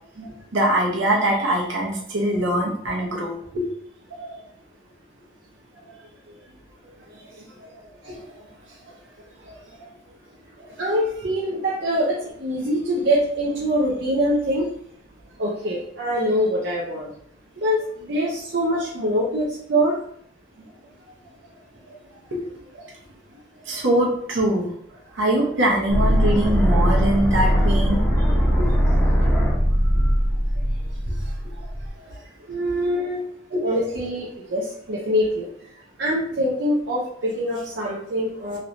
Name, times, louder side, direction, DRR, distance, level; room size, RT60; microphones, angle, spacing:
voice 1, 0.2-3.6 4.2-4.4 8.0-8.3 9.5-9.6 21.9-22.0 23.7-24.7 25.1-28.0 28.6-28.7 30.0-30.1 33.5-33.6, right 1 dB, 80° right, -2 dB, 0.9 m, -23 dB
voice 2, 10.8-14.7 15.4-17.1 17.6-20.0 28.2-28.3 32.5-33.2 33.6-35.7 36.0-38.6, equal, 60° right, -5 dB, 0.6 m, -24 dB
sound 1, 25.9-31.9, equal, 5° left, 0.8 m, -20 dB
3.1 x 3.0 x 2.6 m, 0.67 s
head